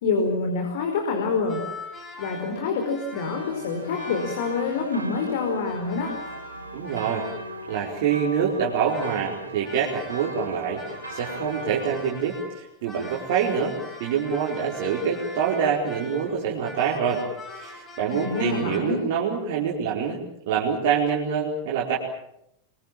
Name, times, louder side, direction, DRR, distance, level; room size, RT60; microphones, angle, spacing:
voice 1, 0.0-1.6 2.2-6.1 18.1-19.0, left 4 dB, 55° left, 3 dB, 4.8 m, -26 dB
sound 1, 1.5-10.5 10.7-18.8, left 2 dB, 20° left, 6.4 m, -43 dB
sound 2, 3.2-12.1, equal, 80° right, 2.5 m, -39 dB
voice 2, 6.7-7.3 7.7-17.2 17.5-20.2 20.5-22.0, right 7 dB, 50° right, -4 dB, 4.7 m, -26 dB
26.5 x 23.5 x 7.5 m, 0.79 s
figure-of-eight pair, 90°, 0 cm